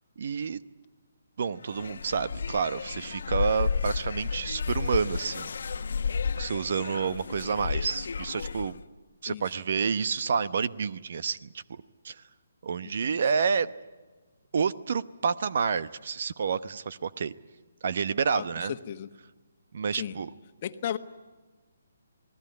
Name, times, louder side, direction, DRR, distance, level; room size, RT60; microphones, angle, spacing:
voice 1, 0.2-0.6 1.4-5.8 6.4-8.8 9.2-12.1 12.6-13.7 14.5-17.3 17.8-18.7 19.7-20.3, right 6 dB, 55° right, 15 dB, 0.9 m, -29 dB
sound 1, 1.6-8.8, left 5 dB, 65° left, 1.1 m, -32 dB
voice 2, 12.8-13.2 18.3-19.1 19.9-20.2 20.6-21.0, left 10 dB, 40° left, 10 dB, 1.3 m, -35 dB
28.0 x 19.5 x 9.5 m, 1.3 s
figure-of-eight pair, 145°, 0 cm